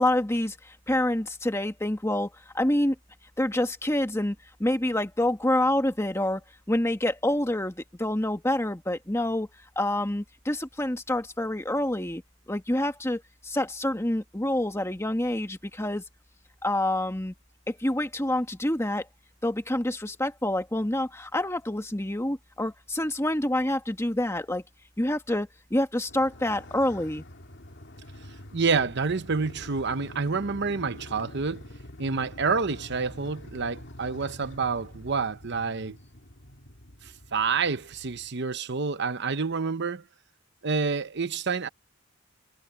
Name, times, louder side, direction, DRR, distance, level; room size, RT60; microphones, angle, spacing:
voice 1, 0.0-2.9 3.4-4.3 4.6-6.4 6.7-9.5 9.7-16.0 16.6-17.3 17.7-19.1 19.4-24.6 25.0-27.2, left 1 dB, 15° left, 1.5 m, -27 dB
Motorcycle, 26.1-38.3, left 1 dB, 60° left, 2.6 m, -46 dB
voice 2, 28.5-31.7 32.0-36.0 37.0-40.0 40.6-41.7, right 5 dB, 55° right, 0.9 m, -28 dB
head